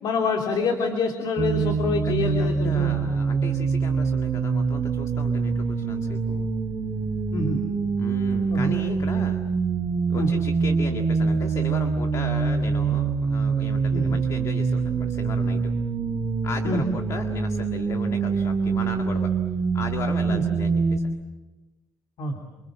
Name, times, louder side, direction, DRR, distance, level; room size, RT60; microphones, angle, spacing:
voice 1, 0.0-3.0 7.3-7.6 8.5-8.7 10.1-10.3 13.9-14.1 16.6-16.8 20.3-20.4 22.2-22.4, left 3 dB, 90° left, 3 dB, 3.3 m, -26 dB
sound 1, 1.4-21.0, right 5 dB, 40° right, 3.0 m, -25 dB
voice 2, 2.0-6.5 8.0-9.4 10.1-15.7 16.4-19.3 19.7-21.2, left 4 dB, 45° left, 5 dB, 1.9 m, -36 dB
28.5 x 26.0 x 7.7 m, 1.1 s
wide cardioid pair, 160°, 7 cm